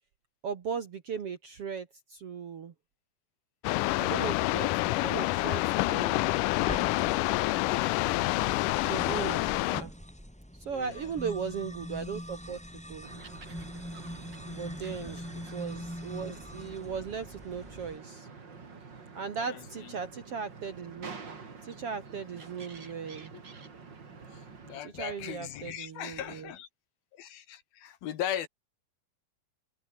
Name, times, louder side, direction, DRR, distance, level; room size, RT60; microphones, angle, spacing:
voice 1, 0.4-2.7 4.0-6.4 8.8-9.5 9.8-9.9 10.6-13.1 14.5-15.2 15.5-18.3 19.1-21.1 21.6-23.3 24.9-26.5, right 6 dB, 50° right, 1.9 m, -37 dB
sound 1, 3.6-9.8, left 20 dB, 90° left, 1.8 m, -27 dB
sound 2, 6.7-18.0, equal, ahead, 4.1 m, -43 dB
voice 2, 10.7-11.1 14.9-15.3 19.4-19.9 24.3-26.7 27.1-28.5, left 10 dB, 75° left, 3.7 m, -39 dB
sound 3, 13.0-24.8, right 5 dB, 30° right, 3.1 m, -48 dB
omnidirectional pair, 4.4 m